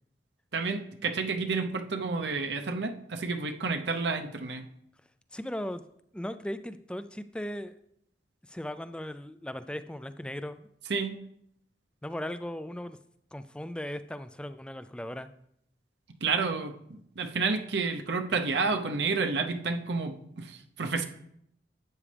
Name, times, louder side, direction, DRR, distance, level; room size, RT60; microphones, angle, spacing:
voice 1, 0.5-4.6 10.9-11.1 16.2-16.7 17.2-21.1, right 4 dB, 70° right, 5 dB, 0.7 m, -30 dB
voice 2, 5.3-5.8 6.1-7.8 8.4-10.7 12.0-13.0 13.3-15.3, left 1 dB, 5° left, 12 dB, 0.3 m, -37 dB
12.0 x 8.6 x 3.4 m, 0.73 s
head